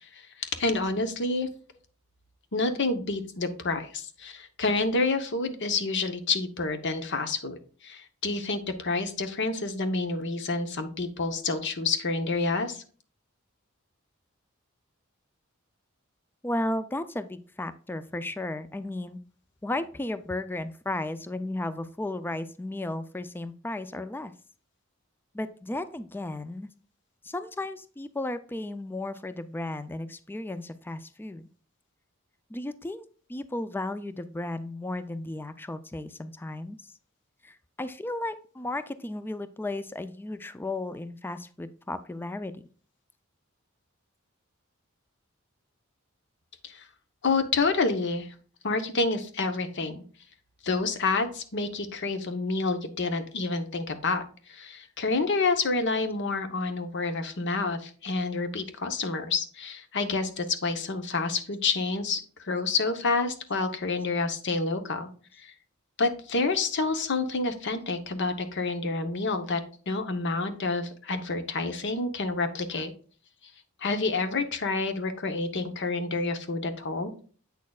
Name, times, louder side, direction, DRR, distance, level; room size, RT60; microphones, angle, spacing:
voice 1, 0.0-1.5 2.5-12.8 46.6-46.8 47.2-48.3 48.6-50.0 50.6-65.1 65.4-65.5 66.0-69.6 69.9-72.9 73.8-77.1, left 3 dB, 60° left, 8 dB, 0.9 m, -28 dB
voice 2, 16.4-19.2 19.6-24.3 25.3-26.7 27.2-31.4 32.5-33.0 33.3-36.8 37.4-42.6, left 2 dB, 10° left, 13 dB, 0.3 m, -34 dB
8.2 x 6.4 x 2.3 m, 0.42 s
head